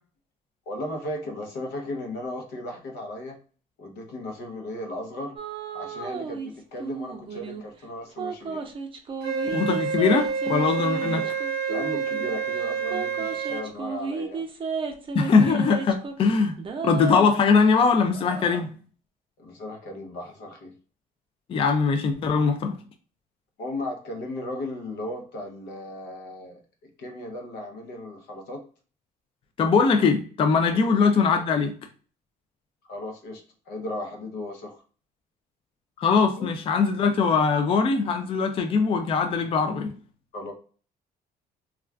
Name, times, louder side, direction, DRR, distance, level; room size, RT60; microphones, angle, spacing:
voice 1, 0.7-3.4 3.8-5.4 5.7-8.7 10.6-10.7 11.0-11.3 11.7-14.4 19.4-20.7 23.6-26.6 27.0-28.6 30.7-30.9 32.9-34.8 36.4-36.5 40.3-40.5, left 1 dB, 80° left, 0.8 m, -36 dB
sound 1, 5.4-6.5 6.8-7.6 8.2-12.4 12.9-16.2 16.6-17.4, right 5 dB, 30° right, 0.5 m, -33 dB
Wind instrument woodwind instrument, 9.2-13.7, right 6 dB, 75° right, 0.6 m, -28 dB
voice 2, 9.5-11.2 15.1-16.6 16.8-18.7 21.5-22.8 29.6-31.7 36.0-39.9, left 5 dB, 35° left, 0.4 m, -21 dB
Screaming, 18.1-18.7 20.2-20.4, right 2 dB, 10° right, 0.8 m, -42 dB
2.4 x 2.3 x 3.2 m
cardioid pair, 110°, 17 cm